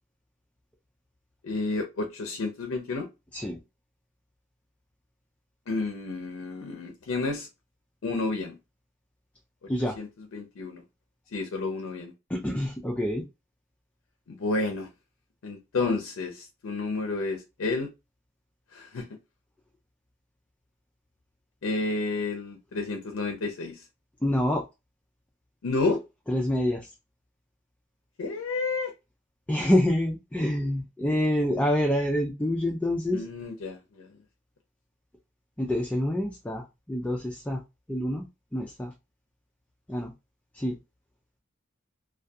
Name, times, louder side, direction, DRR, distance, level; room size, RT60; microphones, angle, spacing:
voice 1, 1.4-3.1 5.7-7.5 8.0-8.6 10.0-10.8 11.3-12.1 14.3-14.9 15.4-17.9 18.7-19.1 21.6-23.8 25.6-26.0 28.2-28.9 33.1-34.1, left 3 dB, 85° left, 0.5 m, -30 dB
voice 2, 12.3-13.2 24.2-24.6 26.3-26.9 29.5-33.2 35.6-37.6 37.9-38.3 38.5-38.9 39.9-40.1 40.5-40.8, left 1 dB, 5° left, 0.3 m, -27 dB
2.2 x 2.2 x 2.6 m
head